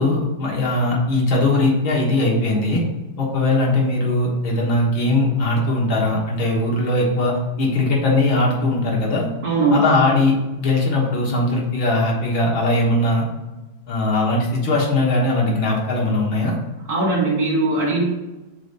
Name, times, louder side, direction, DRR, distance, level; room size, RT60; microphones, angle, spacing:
voice 1, 0.0-2.8 3.2-9.3 9.7-13.2 13.9-16.5, left 2 dB, 85° left, -2 dB, 2.2 m, -20 dB
voice 2, 9.4-9.9 16.9-18.0, right 2 dB, 35° right, -5 dB, 2.4 m, -19 dB
5.1 x 4.0 x 5.3 m, 1.1 s
omnidirectional pair, 2.1 m